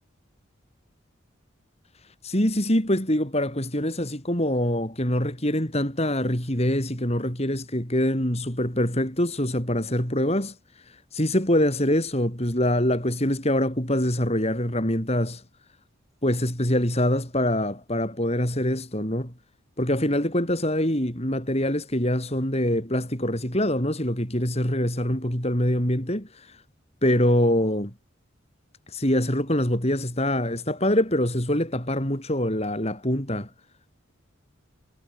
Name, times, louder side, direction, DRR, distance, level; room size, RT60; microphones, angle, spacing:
voice 1, 2.2-10.6 10.9-15.4 16.2-19.3 19.8-26.6 27.0-27.9 28.9-33.5, left 1 dB, 30° left, 5.9 m, -24 dB
head